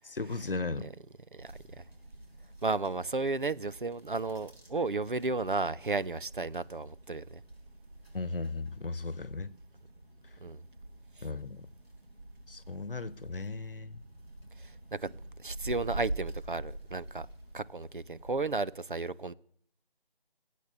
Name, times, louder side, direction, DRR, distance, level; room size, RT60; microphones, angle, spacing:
voice 1, 0.0-0.9 8.1-9.5 11.2-11.7 12.5-14.0, left 3 dB, 65° left, 1.0 m, -36 dB
voice 2, 1.3-1.8 2.6-7.4 10.4-10.6 11.2-11.3 14.6-17.3 17.5-19.3, right 3 dB, 60° right, 0.7 m, -34 dB
sound 1, 1.4-18.7, right 1 dB, 85° right, 6.4 m, -46 dB
20.5 x 8.4 x 7.0 m
figure-of-eight pair, 175°, 30 cm